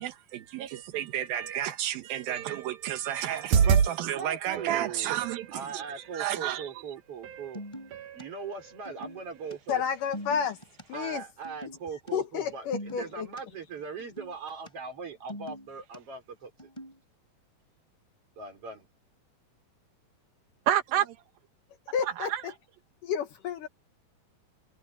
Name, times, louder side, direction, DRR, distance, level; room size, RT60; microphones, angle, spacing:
voice 1, 0.0-5.9 6.1-6.7 20.7-21.2 22.0-22.4, right 11 dB, 85° right, 2.9 m, -31 dB
sound 1, 3.4-3.9 4.5-5.5 6.6-6.7 7.2-7.5 7.9-8.2 8.6-8.7, right 7 dB, 60° right, 2.7 m, -25 dB
voice 2, 4.2-5.2 5.5-7.6 8.1-9.8 10.9-16.5 18.4-18.9, right 5 dB, 40° right, 5.1 m, -40 dB
sound 2, 7.5-8.2 8.7-9.5 10.0-10.8 11.4-11.8 12.1-12.2 12.4-13.4 14.0-14.7 15.1-16.0 16.6-17.0, equal, 10° left, 4.5 m, -42 dB
voice 3, 9.7-10.6 10.9-11.2 12.1-13.3 21.9-22.3 23.0-23.7, left 7 dB, 70° left, 2.8 m, -30 dB
omnidirectional pair, 4.2 m